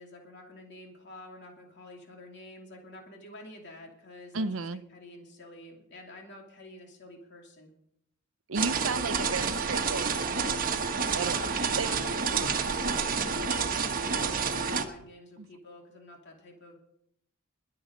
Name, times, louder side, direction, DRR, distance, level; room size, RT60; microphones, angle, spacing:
voice 1, 0.0-7.7 11.1-16.8, left 1 dB, 55° left, 2.8 m, -49 dB
voice 2, 4.3-4.8 8.5-10.6 11.1-11.4 11.8-11.9 15.4-15.5, right 4 dB, 70° right, 0.7 m, -33 dB
Print Shop Folder, 8.5-14.8, right 5 dB, 45° right, 1.3 m, -29 dB
21.5 x 7.8 x 5.2 m
head